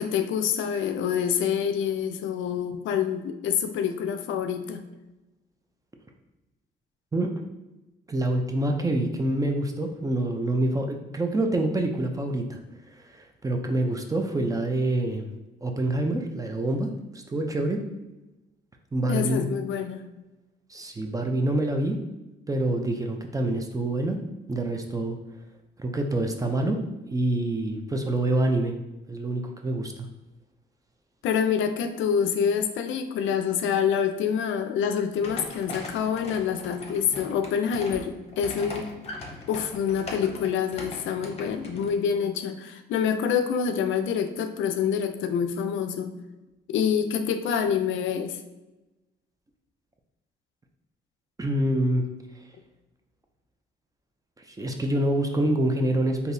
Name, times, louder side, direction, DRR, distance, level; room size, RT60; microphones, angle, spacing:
voice 1, 0.0-4.9 19.1-20.0 31.2-38.9 39.5-46.1 46.7-48.4, left 7 dB, 75° left, 7 dB, 0.4 m, -26 dB
voice 2, 8.1-12.6 13.0-15.3 15.6-17.8 18.9-19.5 20.7-22.0 22.5-24.2 24.5-25.2 25.8-26.8 27.1-28.7 29.1-30.1 51.4-52.0 54.5-56.3, right 1 dB, 15° right, 3 dB, 0.4 m, -26 dB
sound 1, 35.2-41.9, left 2 dB, 30° left, 0.8 m, -40 dB
3.8 x 2.8 x 2.6 m, 1.0 s
cardioid pair, 90°, 20 cm